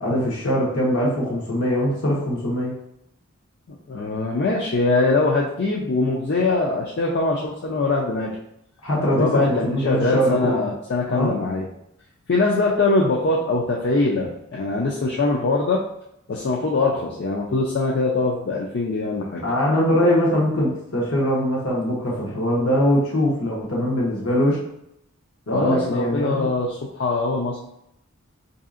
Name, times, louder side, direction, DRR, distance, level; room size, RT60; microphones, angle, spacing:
voice 1, 0.0-2.7 8.8-10.7 11.1-11.4 19.4-24.6 25.5-26.5, equal, 75° left, -5 dB, 0.9 m, -22 dB
voice 2, 3.9-8.4 9.2-11.7 12.3-15.8 16.3-19.4 25.5-27.6, left 3 dB, 50° left, -3 dB, 0.4 m, -22 dB
4.8 x 2.7 x 2.4 m, 0.78 s
head